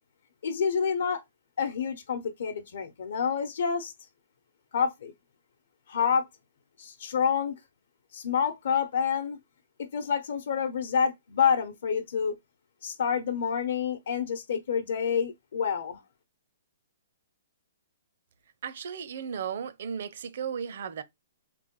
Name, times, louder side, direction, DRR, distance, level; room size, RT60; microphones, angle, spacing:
voice 1, 0.4-1.2 1.6-3.9 4.7-5.1 5.9-6.2 6.8-7.5 8.1-9.4 9.9-12.3 12.8-16.0, left 7 dB, 70° left, 0.8 m, -28 dB
voice 2, 18.6-21.0, right 7 dB, 60° right, 0.7 m, -35 dB
3.8 x 3.3 x 3.7 m
hypercardioid pair, 160°, 0 cm